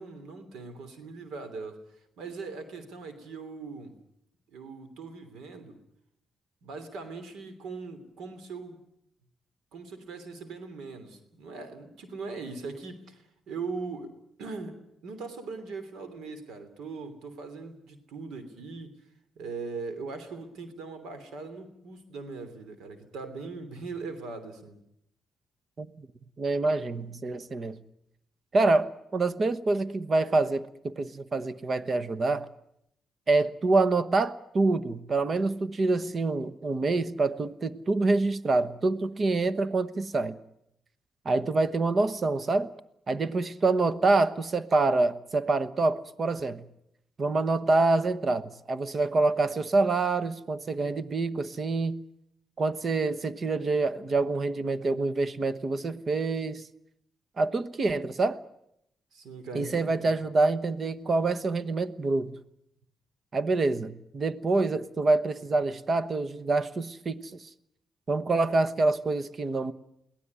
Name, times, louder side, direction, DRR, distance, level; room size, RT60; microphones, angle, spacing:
voice 1, 0.0-1.8 2.2-3.9 4.5-5.8 6.6-8.8 9.7-14.1 14.4-19.0 19.4-24.8 59.1-60.1, right 4 dB, 85° right, 10 dB, 3.2 m, -40 dB
voice 2, 26.4-27.8 28.5-32.5 33.3-40.4 41.2-42.7 43.1-46.6 47.2-52.0 52.6-56.6 57.4-58.4 59.5-62.4 63.3-67.5 68.1-69.7, right 3 dB, 40° right, 15 dB, 1.1 m, -26 dB
23.0 x 17.5 x 9.6 m, 0.79 s
cardioid pair, 115°, 0 cm